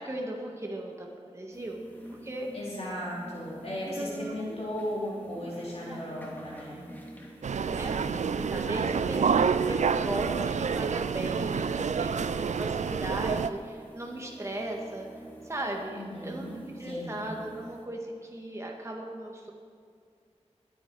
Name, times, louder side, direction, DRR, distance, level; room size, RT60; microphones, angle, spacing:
voice 1, 0.0-1.8 2.1-2.5 3.9-4.6 5.3-5.5 5.9-6.0 7.7-15.1 15.4-19.5, right 1 dB, 25° right, 0 dB, 1.7 m, -37 dB
sound 1, 1.5-17.9, right 1 dB, 15° left, 2.4 m, -48 dB
voice 2, 2.5-6.9 15.9-17.2, equal, 60° left, -6 dB, 3.8 m, -36 dB
sound 2, 7.4-13.5, right 6 dB, 85° right, 0.4 m, -28 dB
21.0 x 8.8 x 4.8 m, 2.3 s
wide cardioid pair, 85°, 12 cm